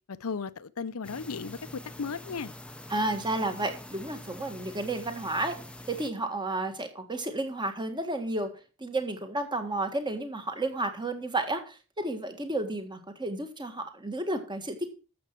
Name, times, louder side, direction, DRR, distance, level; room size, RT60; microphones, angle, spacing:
voice 1, 0.1-2.5, left 5 dB, 75° left, 0.7 m, -35 dB
sound 1, 1.0-6.1, left 1 dB, 5° left, 0.7 m, -45 dB
voice 2, 2.9-5.6 5.9-8.5 8.8-14.9, right 2 dB, 20° right, 1.7 m, -32 dB
12.0 x 7.8 x 4.6 m
head